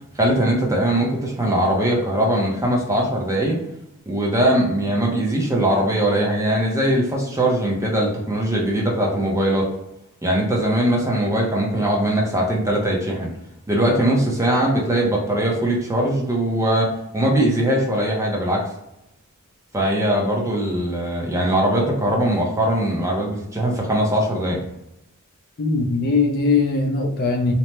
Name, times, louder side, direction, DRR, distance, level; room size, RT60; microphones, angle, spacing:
voice 1, 0.2-3.6 4.1-9.7 10.2-13.3 13.7-18.7 19.7-24.6, right 1 dB, 15° right, -2 dB, 0.5 m, -21 dB
voice 2, 25.6-27.5, left 4 dB, 45° left, 2 dB, 0.4 m, -20 dB
2.9 x 2.0 x 3.2 m, 0.84 s
head